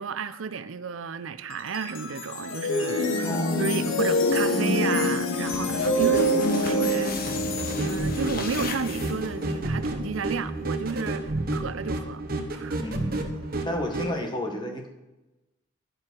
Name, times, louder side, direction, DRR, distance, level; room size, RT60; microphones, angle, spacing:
voice 1, 0.0-7.5 7.8-12.2 12.5-12.8, right 5 dB, 80° right, 0.5 m, -32 dB
sound 1, 1.5-10.8, left 1 dB, 80° left, 1.3 m, -26 dB
voice 2, 3.2-3.7 12.8-13.1 13.6-14.9, left 1 dB, 20° left, 1.4 m, -31 dB
sound 2, 5.0-9.5, left 4 dB, 45° left, 1.2 m, -38 dB
sound 3, 7.6-14.1, right 2 dB, 45° right, 1.1 m, -31 dB
11.0 x 7.6 x 4.6 m
head